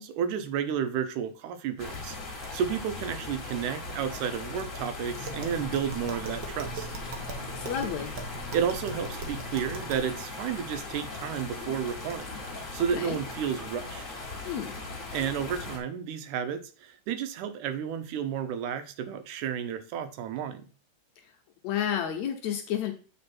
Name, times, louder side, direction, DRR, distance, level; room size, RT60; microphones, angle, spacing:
voice 1, 0.0-6.9 8.5-12.4 12.7-14.1 15.1-20.7, right 8 dB, 80° right, 10 dB, 2.2 m, -32 dB
sound 1, 1.8-15.8, left 3 dB, 30° left, 1.7 m, -39 dB
Tap, 5.2-10.1, right 2 dB, 60° right, 1.2 m, -40 dB
voice 2, 7.6-8.1 13.0-13.2 14.4-14.8 21.6-22.9, left 9 dB, 70° left, 4 dB, 1.9 m, -31 dB
8.5 x 4.4 x 4.3 m, 0.37 s
omnidirectional pair, 3.8 m